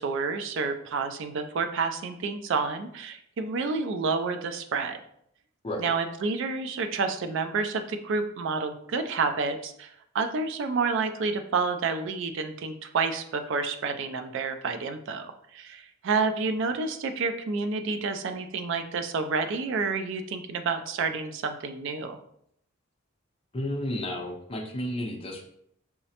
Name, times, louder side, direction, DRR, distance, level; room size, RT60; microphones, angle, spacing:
voice 1, 0.0-5.0 5.8-22.2, right 4 dB, 60° right, 8 dB, 0.3 m, -29 dB
voice 2, 23.5-25.4, left 1 dB, 25° left, 0 dB, 0.6 m, -32 dB
5.7 x 2.1 x 2.8 m, 0.71 s
head